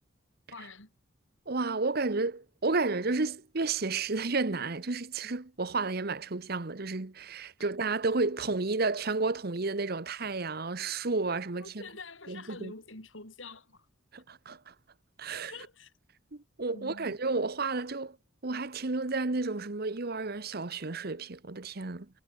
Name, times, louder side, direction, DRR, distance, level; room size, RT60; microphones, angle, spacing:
voice 1, 0.5-0.9 11.6-13.9 15.3-15.9 16.7-17.2, left 3 dB, 85° left, 7.4 m, -46 dB
voice 2, 1.5-11.8 12.3-12.7 14.1-14.7 15.2-15.5 16.3-18.2 18.4-22.1, right 3 dB, 50° right, 1.1 m, -32 dB
head